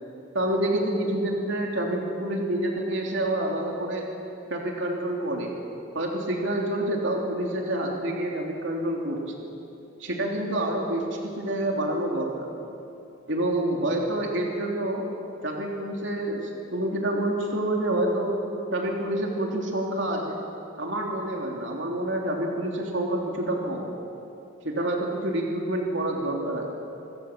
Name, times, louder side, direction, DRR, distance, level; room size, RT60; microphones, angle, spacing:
voice 1, 0.3-4.0 4.5-5.5 5.9-9.3 10.0-12.5 13.3-15.1 15.4-18.4 18.7-20.4 20.8-23.9 24.6-26.7, right 1 dB, 60° right, 0 dB, 3.2 m, -27 dB
26.5 x 23.5 x 7.4 m, 2.8 s
head